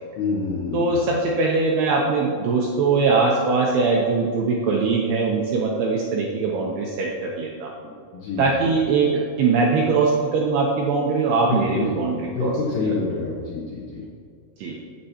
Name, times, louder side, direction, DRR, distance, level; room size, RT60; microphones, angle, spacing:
voice 1, 0.2-0.9 8.1-8.7 11.5-11.9 12.2-14.1, left 4 dB, 85° left, -6 dB, 1.9 m, -27 dB
voice 2, 0.7-7.7 8.4-12.5 14.6-14.8, right 4 dB, 85° right, -2 dB, 2.3 m, -21 dB
15.0 x 7.6 x 2.9 m, 2.3 s
omnidirectional pair, 5.9 m